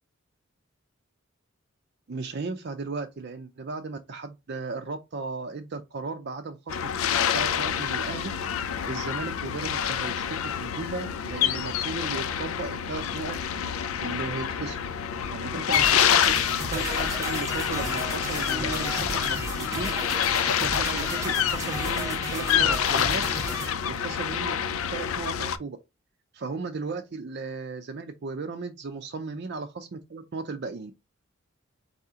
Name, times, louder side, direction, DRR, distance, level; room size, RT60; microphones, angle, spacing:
voice 1, 2.1-6.9 7.3-8.3 8.9-13.4 14.0-14.8 15.3-16.4 16.7-19.9 20.6-23.4 23.9-24.6 24.9-25.8 26.3-30.9, right 4 dB, 50° right, 0.5 m, -35 dB
sound 1, 6.7-25.6, left 9 dB, 85° left, 0.4 m, -27 dB
sound 2, 15.7-23.7, right 1 dB, 15° right, 0.8 m, -34 dB
4.1 x 2.8 x 3.5 m
head